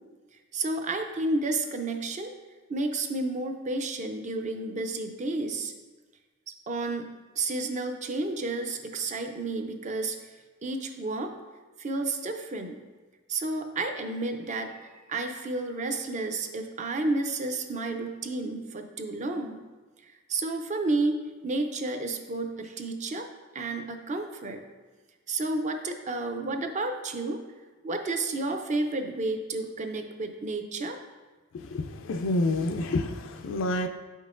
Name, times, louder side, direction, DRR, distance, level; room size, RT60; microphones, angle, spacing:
voice 1, 0.5-2.3 2.7-5.7 6.7-7.1 7.4-10.3 10.6-11.3 11.8-12.8 13.3-19.6 20.0-23.3 23.5-24.6 25.3-27.4 27.8-31.0, right 2 dB, 35° right, 6 dB, 0.5 m, -31 dB
voice 2, 31.7-33.9, left 2 dB, 65° left, 6 dB, 0.3 m, -28 dB
7.3 x 5.3 x 2.5 m, 1.3 s
head